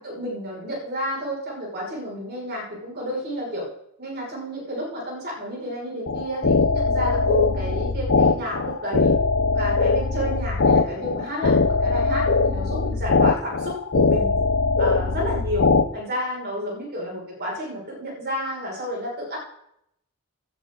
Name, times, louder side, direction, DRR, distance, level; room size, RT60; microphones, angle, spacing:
voice 1, 0.0-3.7 4.0-9.1 9.5-14.4 14.8-19.4, equal, 50° right, -2 dB, 5.8 m, -30 dB
sound 1, 6.1-15.8, left 3 dB, 60° left, 0.8 m, -21 dB
17.0 x 11.0 x 3.9 m, 0.75 s
head